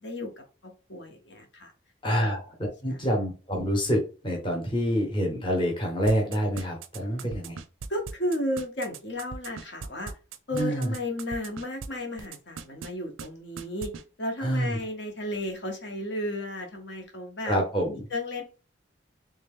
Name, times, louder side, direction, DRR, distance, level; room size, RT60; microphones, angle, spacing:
voice 1, 0.0-1.7 2.2-2.3 2.9-3.1 7.9-10.1 10.5-13.9 14.2-17.6 17.9-18.4, left 1 dB, 60° left, 3 dB, 1.0 m, -34 dB
voice 2, 2.0-2.5 2.8-7.6 10.5-10.9 14.4-14.8 17.4-18.0, equal, 25° left, 0 dB, 1.0 m, -27 dB
sound 1, 6.1-11.9 12.2-12.9 13.2-13.3 13.6-14.0, right 5 dB, 85° right, 0.4 m, -39 dB
3.3 x 2.8 x 3.6 m, 0.34 s
head